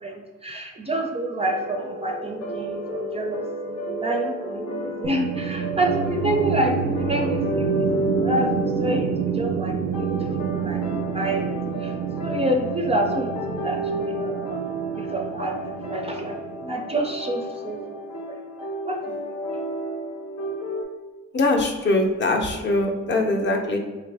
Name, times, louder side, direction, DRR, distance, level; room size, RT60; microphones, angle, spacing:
voice 1, 0.0-7.9 8.2-9.1 9.3-10.8 11.1-11.5 11.8-11.9 12.2-14.6 14.9-15.6 15.9-18.0 18.3-19.2, right 1 dB, 20° right, 2 dB, 0.4 m, -28 dB
sound 1, 1.4-20.8, right 1 dB, 80° left, 0.8 m, -31 dB
sound 2, 5.0-17.2, right 6 dB, 90° right, 0.5 m, -29 dB
voice 2, 21.3-23.8, left 2 dB, 40° left, 3 dB, 0.6 m, -22 dB
3.3 x 2.4 x 3.3 m, 1.3 s
cardioid pair, 90°, 30 cm